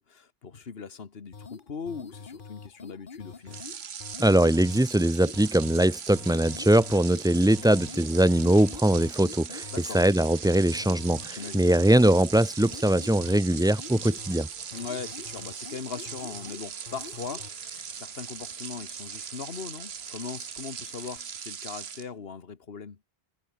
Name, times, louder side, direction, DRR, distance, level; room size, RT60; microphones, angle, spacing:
voice 1, 0.0-3.6 9.7-10.0 11.3-11.7 14.7-23.0, left 5 dB, 75° left, 1.7 m, -40 dB
sound 1, 1.3-17.5, left 5 dB, 55° left, 1.5 m, -45 dB
sound 2, 3.4-22.1, right 7 dB, 80° right, 1.3 m, -40 dB
voice 2, 4.2-14.5, right 1 dB, 5° right, 0.4 m, -22 dB
sound 3, 5.5-21.2, left 1 dB, 35° left, 6.4 m, -58 dB
omnidirectional pair, 1.0 m